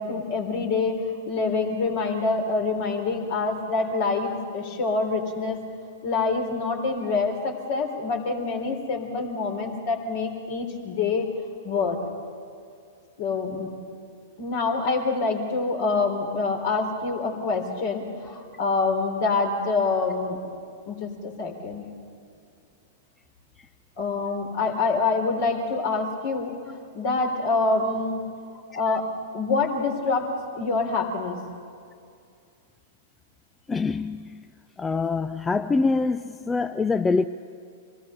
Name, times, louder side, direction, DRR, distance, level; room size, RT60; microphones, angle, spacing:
voice 1, 0.0-5.6 6.0-11.3 11.6-12.0 13.2-13.7 14.4-20.4 20.9-21.9 24.0-26.5 26.9-28.2 28.7-29.1 29.3-30.3 30.5-31.4, left 4 dB, 50° left, 3.5 m, -26 dB
voice 2, 33.7-34.5 34.8-37.2, left 4 dB, 15° left, 0.4 m, -25 dB
26.0 x 19.0 x 6.8 m
figure-of-eight pair, 100°, 0 cm